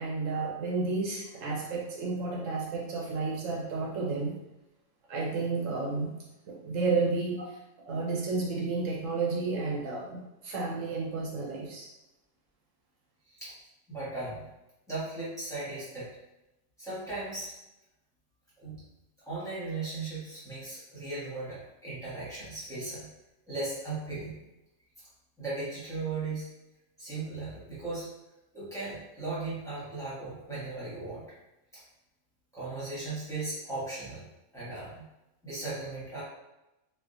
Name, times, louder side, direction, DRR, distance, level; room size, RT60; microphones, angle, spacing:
voice 1, 0.0-4.4 5.1-6.1 6.5-7.4 7.9-11.9, right 3 dB, 80° right, -3 dB, 1.1 m, -31 dB
voice 2, 13.9-14.5 14.9-16.1 16.8-17.5 18.6-18.8 19.3-23.1 23.5-24.4 25.4-26.5 27.0-28.1 28.5-31.2 32.5-34.3 34.5-35.1 35.4-36.2, right 3 dB, 5° left, -11 dB, 1.4 m, -37 dB
3.5 x 2.5 x 2.6 m, 0.96 s
omnidirectional pair, 1.3 m